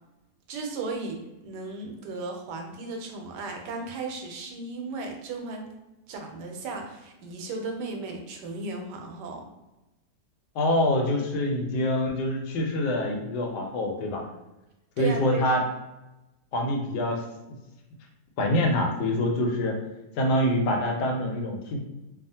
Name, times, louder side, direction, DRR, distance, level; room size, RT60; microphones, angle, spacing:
voice 1, 0.5-5.7 6.1-9.4 15.0-15.6, right 3 dB, 85° right, 3 dB, 1.2 m, -35 dB
voice 2, 10.6-14.2 15.0-15.6 16.5-17.2 17.5-17.6 18.4-19.8 20.2-21.8, left 1 dB, 85° left, 2 dB, 1.2 m, -25 dB
2.7 x 2.4 x 2.7 m, 0.99 s
omnidirectional pair, 1.8 m